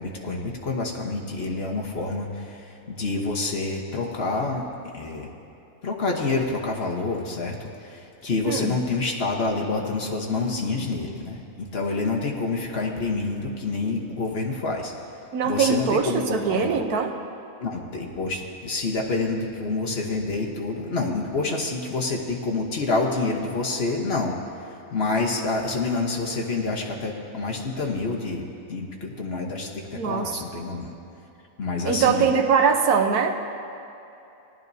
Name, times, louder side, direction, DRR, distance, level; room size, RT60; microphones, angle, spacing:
voice 1, 0.0-4.7 4.9-5.3 5.8-14.9 15.4-16.8 17.6-24.3 24.9-30.9 31.6-32.3, left 3 dB, 45° left, -1 dB, 1.2 m, -27 dB
voice 2, 8.4-8.8 15.3-17.1 29.9-30.4 31.9-33.4, right 6 dB, 85° right, 5 dB, 1.3 m, -22 dB
18.0 x 11.5 x 2.7 m, 2.8 s
omnidirectional pair, 1.6 m